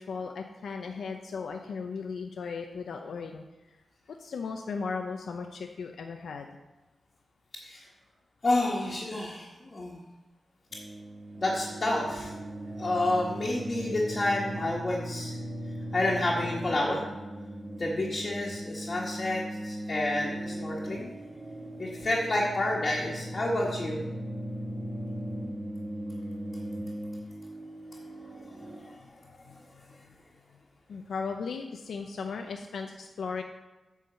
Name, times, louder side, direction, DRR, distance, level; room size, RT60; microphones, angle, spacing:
voice 1, 0.0-3.4 4.1-6.5 29.5-29.6 30.9-33.4, left 5 dB, 85° left, 4 dB, 0.7 m, -36 dB
voice 2, 8.4-10.0 11.4-12.3 12.8-15.4 15.9-17.0 17.8-21.1 21.8-24.0 28.3-28.4 28.7-29.2, left 1 dB, 40° left, -5 dB, 1.6 m, -29 dB
sound 1, 10.7-28.8, right 1 dB, 60° right, 2.2 m, -38 dB
9.2 x 4.9 x 6.9 m, 1.1 s
wide cardioid pair, 95°, 0 cm